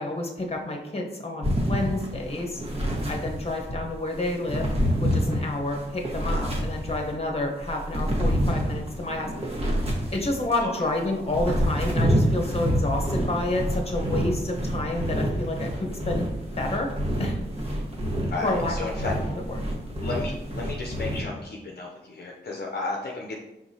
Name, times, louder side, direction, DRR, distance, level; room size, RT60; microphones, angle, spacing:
voice 1, 0.0-2.6 3.1-4.7 5.0-9.3 10.1-16.3 16.6-16.9 17.2-17.4 18.4-18.7, left 2 dB, 30° left, 2 dB, 0.9 m, -29 dB
sound 1, 1.4-3.8 4.2-7.2 7.6-10.6 11.1-21.2, equal, 30° right, 1.4 m, -27 dB
voice 2, 10.6-11.0 18.3-19.1 20.0-23.3, left 3 dB, 55° left, -1 dB, 0.6 m, -33 dB
4.7 x 3.8 x 2.8 m, 0.96 s
cardioid pair, 50°, 20 cm